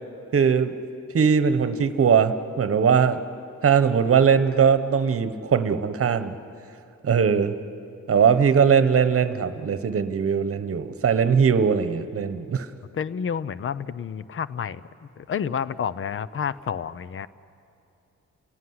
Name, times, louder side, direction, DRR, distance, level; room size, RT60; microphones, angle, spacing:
voice 1, 0.3-0.7 1.1-3.2 3.6-6.3 7.0-7.5 8.1-12.7, right 6 dB, 50° right, 11 dB, 1.2 m, -20 dB
voice 2, 12.9-14.8 15.2-17.3, left 7 dB, 45° left, 17 dB, 0.7 m, -29 dB
29.5 x 17.5 x 9.6 m, 2.7 s
wide cardioid pair, 140°, 30 cm